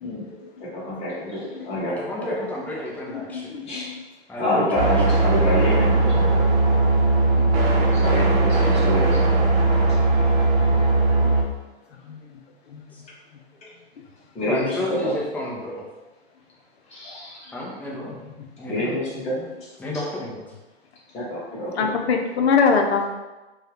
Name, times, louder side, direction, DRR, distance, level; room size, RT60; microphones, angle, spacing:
voice 1, 0.0-0.4 1.5-1.8 3.3-3.9 10.7-10.8 11.2-11.3 12.1-12.4 12.7-12.8 13.3-13.4 18.4-18.5 21.8-23.0, left 5 dB, 80° left, 3 dB, 0.6 m, -24 dB
voice 2, 0.6-2.4 3.6-3.9 4.4-6.5 7.9-9.5 14.3-15.1 16.9-17.5 18.6-19.7 21.1-21.9, left 1 dB, 20° left, -7 dB, 1.1 m, -27 dB
voice 3, 1.9-3.7 4.3-4.9 7.3-7.5 12.9-13.0 13.6-13.7 14.5-15.8 17.5-18.1 18.6-19.0 19.8-20.4, left 1 dB, 5° left, -4 dB, 0.5 m, -31 dB
sound 1, 4.8-11.4, right 2 dB, 40° right, 0.6 m, -19 dB
2.7 x 2.3 x 3.3 m, 1.1 s
hypercardioid pair, 120°, 32 cm